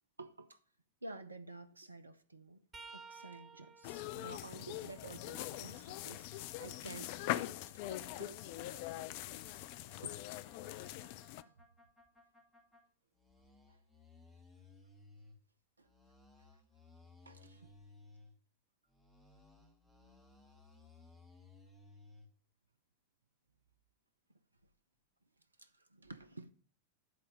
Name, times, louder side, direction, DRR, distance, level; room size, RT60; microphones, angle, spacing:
voice 1, 0.2-0.6 1.0-2.6 2.9-6.3 6.6-7.1 7.5-10.2 11.4-11.5 13.7-13.8 15.8-15.9 17.2-17.7 25.6-26.5, right 3 dB, 80° right, 0.6 m, -52 dB
sound 1, 2.7-6.5 7.0-9.0 11.9-12.1 13.3-13.5 14.8-14.9, right 5 dB, 20° right, 1.1 m, -59 dB
sound 2, 3.8-11.4, left 15 dB, 45° left, 0.4 m, -42 dB
sound 3, 5.2-12.8 13.1-15.4 15.8-18.3 18.9-22.3, left 3 dB, 5° left, 2.5 m, -61 dB
10.0 x 4.2 x 5.1 m
figure-of-eight pair, 90°, 0 cm